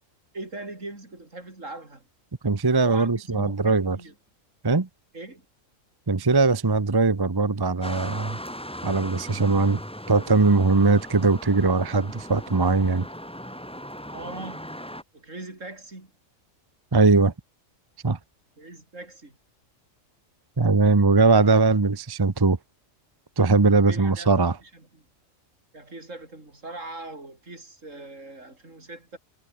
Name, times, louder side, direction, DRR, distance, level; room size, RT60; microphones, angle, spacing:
voice 1, 0.3-2.0 2.8-4.1 5.1-5.5 14.1-14.7 15.1-16.1 18.6-19.4 23.9-24.3 24.9-25.0 25.7-29.2, right 2 dB, 70° right, 5.6 m, -40 dB
voice 2, 2.4-4.0 4.6-4.9 6.1-8.4 8.8-9.8 10.1-13.1 16.9-17.3 18.0-18.2 20.6-22.6 23.4-24.6, right 3 dB, 20° right, 0.8 m, -20 dB
sound 1, 7.8-15.0, equal, 5° left, 2.9 m, -38 dB
omnidirectional pair, 1.4 m